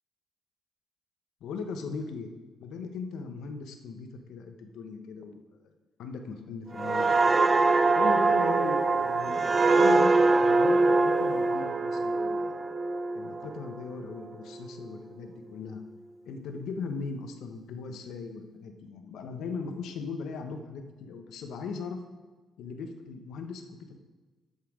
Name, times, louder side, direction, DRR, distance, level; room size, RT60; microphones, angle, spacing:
voice 1, 1.4-2.3 2.6-5.7 6.0-7.1 7.9-9.4 9.8-12.7 13.1-15.8 16.2-22.0 22.6-24.0, left 4 dB, 80° left, 6 dB, 1.1 m, -38 dB
sound 1, 6.8-14.2 14.6-14.9, right 3 dB, 30° right, 0.7 m, -24 dB
13.0 x 5.8 x 5.0 m, 1.3 s
cardioid pair, 90°, 0 cm